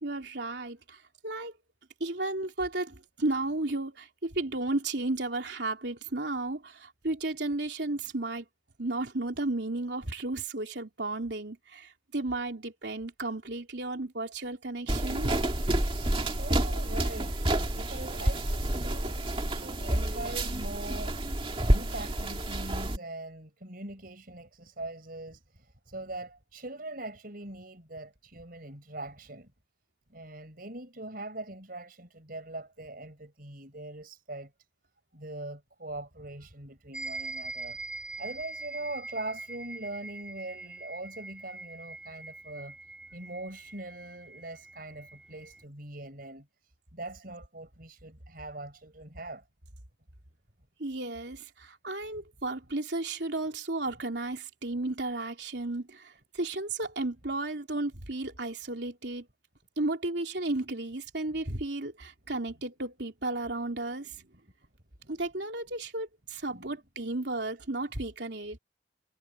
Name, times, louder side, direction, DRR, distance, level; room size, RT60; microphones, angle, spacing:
voice 1, 0.0-1.5 2.0-8.5 8.8-15.3 50.8-59.3 59.8-64.3 65.1-68.6, right 2 dB, 75° right, 3.2 m, -33 dB
sound 1, 14.9-23.0, right 1 dB, 30° right, 2.2 m, -29 dB
voice 2, 16.1-21.2 21.6-29.5 30.1-34.5 35.1-37.8 38.2-42.8 43.1-49.4 66.5-66.8, right 2 dB, 55° right, 5.3 m, -42 dB
sound 2, 36.9-45.6, right 2 dB, 5° right, 2.2 m, -43 dB
head